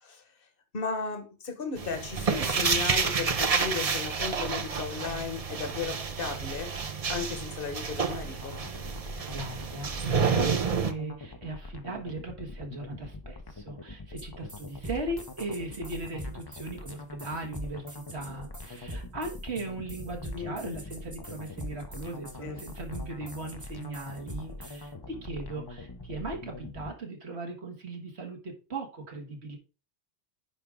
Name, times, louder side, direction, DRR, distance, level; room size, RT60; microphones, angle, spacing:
voice 1, 0.7-6.8 7.1-8.6 20.3-20.8 22.4-22.6, left 5 dB, 55° left, 1.5 m, -35 dB
sound 1, 1.8-10.9, right 5 dB, 40° right, 0.7 m, -29 dB
sound 2, 8.0-26.9, left 2 dB, 25° left, 0.6 m, -44 dB
voice 2, 9.0-29.6, right 2 dB, 70° right, 1.9 m, -38 dB
sound 3, 14.2-14.3 14.5-24.8, equal, 15° right, 1.1 m, -42 dB
9.1 x 5.0 x 3.6 m
omnidirectional pair, 1.2 m